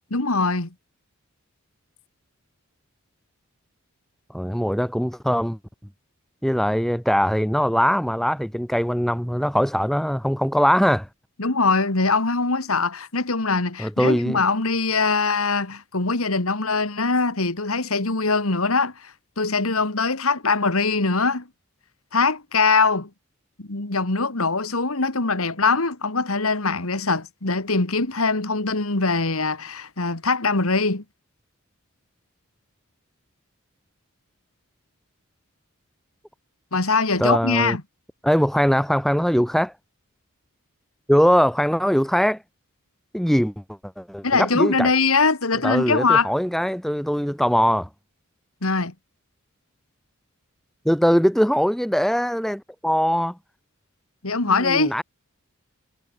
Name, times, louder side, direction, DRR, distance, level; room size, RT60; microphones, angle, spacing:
voice 1, 0.1-0.7 11.4-19.1 19.4-21.5 22.1-23.1 23.6-31.0 36.7-37.8 44.2-46.3 48.6-48.9 54.2-54.9, left 4 dB, 75° left, 2.3 m, -22 dB
voice 2, 4.3-5.6 6.4-11.1 13.8-14.4 37.2-37.8 38.2-39.7 41.1-42.4 43.1-43.5 44.0-44.9 45.6-47.9 50.9-53.4 54.5-55.0, equal, ahead, 2.1 m, -21 dB
head